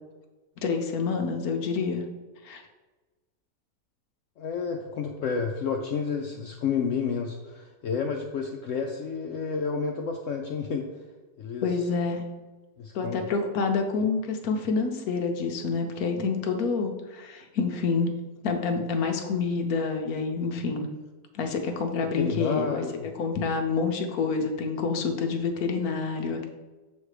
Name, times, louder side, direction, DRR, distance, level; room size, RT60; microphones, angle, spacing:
voice 1, 0.6-2.0 2.4-2.6 11.6-12.2 12.9-18.1 18.4-20.9 21.3-22.8 23.1-26.5, left 4 dB, 65° left, 4 dB, 1.1 m, -27 dB
voice 2, 4.4-10.9 11.4-11.7 12.8-13.2 22.1-23.1, left 5 dB, 80° left, 3 dB, 0.6 m, -30 dB
7.2 x 3.2 x 4.8 m, 1.2 s
omnidirectional pair, 1.8 m